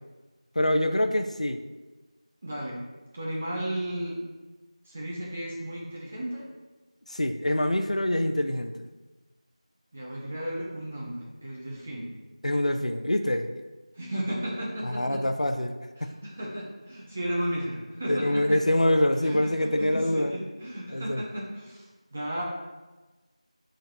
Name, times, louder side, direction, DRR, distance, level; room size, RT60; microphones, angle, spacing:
voice 1, 0.6-1.6 7.1-8.9 12.4-13.6 14.8-15.7 16.0-16.1 18.1-20.4 20.9-21.2, left 1 dB, 85° left, 7 dB, 0.6 m, -25 dB
voice 2, 2.4-2.8 3.1-4.2 4.9-6.4 9.9-12.1 13.9-15.2 16.0-18.6 19.2-22.4, right 1 dB, 10° right, -4 dB, 0.4 m, -34 dB
9.3 x 3.9 x 2.9 m, 1.2 s
figure-of-eight pair, 175°, 4 cm